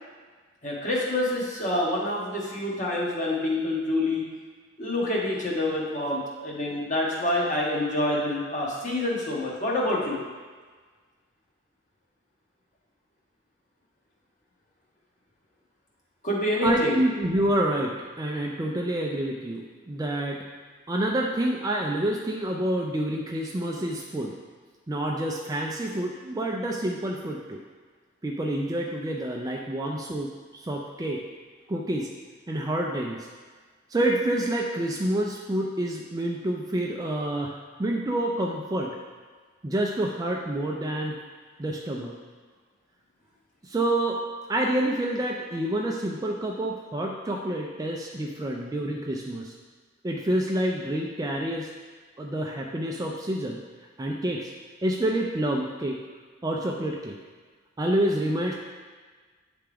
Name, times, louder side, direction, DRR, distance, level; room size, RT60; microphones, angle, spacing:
voice 1, 0.6-4.2 4.8-10.2 16.2-17.0, left 1 dB, 40° left, -4 dB, 1.3 m, -27 dB
voice 2, 16.6-20.4 20.9-24.4 24.9-27.6 28.2-31.2 31.7-32.1 32.5-33.3 33.9-39.0 39.6-41.2 41.6-42.1 43.6-44.2 44.5-49.5 50.0-51.7 52.2-53.6 54.0-54.5 54.8-56.0 56.4-57.2 57.8-58.5, right 1 dB, 20° right, 0 dB, 0.3 m, -28 dB
8.7 x 3.4 x 3.4 m, 1.4 s
head